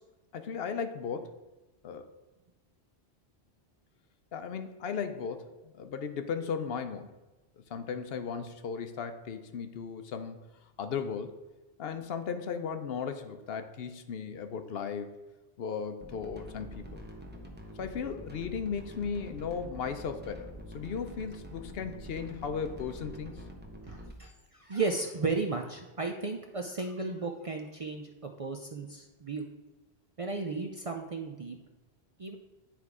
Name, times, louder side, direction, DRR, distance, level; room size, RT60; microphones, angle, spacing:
voice 1, 0.3-1.3 1.8-2.1 4.3-7.1 7.7-10.4 10.8-11.4 11.8-15.1 15.6-17.0 17.8-20.5 20.7-23.4, left 6 dB, 65° left, 8 dB, 0.8 m, -36 dB
sound 1, 16.0-24.1, equal, 10° right, 0.8 m, -46 dB
voice 2, 23.8-29.5 30.2-31.6 32.2-32.4, right 3 dB, 45° right, 3 dB, 0.5 m, -34 dB
10.0 x 3.4 x 4.7 m, 1.1 s
omnidirectional pair, 1.1 m